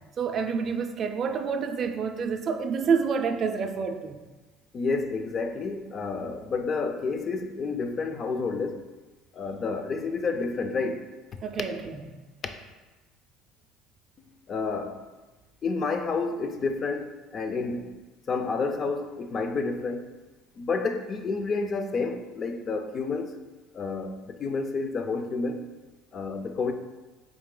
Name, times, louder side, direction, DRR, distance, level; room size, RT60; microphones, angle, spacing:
voice 1, 0.2-4.2 11.4-12.0, right 6 dB, 40° right, 0.3 m, -28 dB
voice 2, 4.7-8.8 9.3-11.1 12.4-12.5 14.5-15.0 15.6-18.0 18.3-20.1 20.6-23.4 23.7-25.6 26.1-26.7, left 4 dB, 35° left, 0.3 m, -30 dB
3.8 x 2.8 x 3.7 m
cardioid pair, 120°, 0 cm